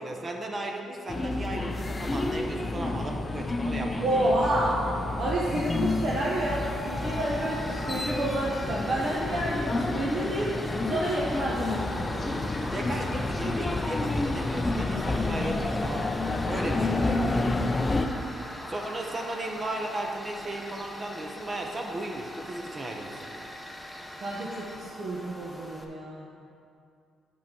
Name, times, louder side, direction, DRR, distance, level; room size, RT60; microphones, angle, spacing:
voice 1, 0.0-4.3 12.7-16.2 16.5-17.4 18.7-23.5, right 1 dB, 30° right, 1 dB, 0.8 m, -36 dB
sound 1, 1.1-18.1, left 2 dB, 25° left, 0.5 m, -30 dB
voice 2, 4.0-4.8 5.2-10.5 10.8-12.4 24.2-26.3, right 1 dB, 60° right, -5 dB, 1.2 m, -29 dB
Tools, 6.5-25.8, left 1 dB, 5° left, 0.9 m, -41 dB
6.2 x 5.7 x 6.9 m, 2.4 s
cardioid pair, 90°, 0 cm